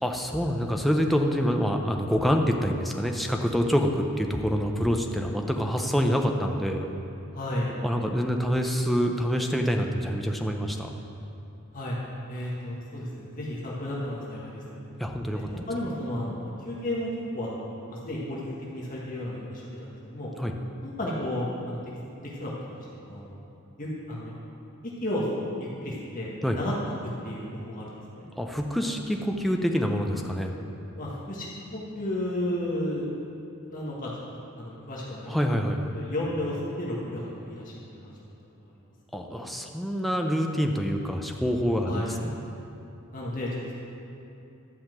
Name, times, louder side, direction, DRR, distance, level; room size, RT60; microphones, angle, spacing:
voice 1, 0.0-6.9 7.8-10.9 15.0-15.5 15.8-16.0 20.4-20.5 26.4-26.6 28.4-30.6 35.3-36.0 39.1-42.4, equal, ahead, 2 dB, 0.6 m, -26 dB
voice 2, 7.3-7.7 11.7-12.0 12.3-14.8 15.5-18.4 18.7-20.3 20.8-21.8 22.2-23.3 23.8-24.3 24.8-25.3 25.6-26.3 26.5-26.9 27.2-28.3 31.0-33.1 33.6-37.7 38.0-38.1 41.8-42.1 43.1-43.7, left 1 dB, 40° left, -5 dB, 1.6 m, -33 dB
11.5 x 5.7 x 7.6 m, 2.8 s
head